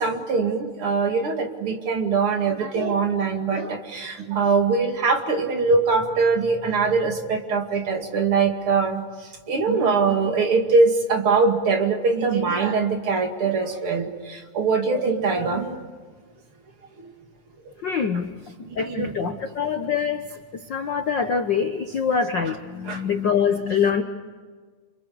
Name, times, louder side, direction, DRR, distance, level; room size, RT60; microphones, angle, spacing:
voice 1, 0.0-15.8 17.0-17.1 18.7-19.3 22.9-23.0, right 4 dB, 45° right, 4 dB, 2.9 m, -22 dB
voice 2, 17.8-18.3 18.7-24.0, left 6 dB, 60° left, 6 dB, 1.2 m, -24 dB
28.5 x 27.5 x 7.0 m, 1.5 s
omnidirectional pair, 3.6 m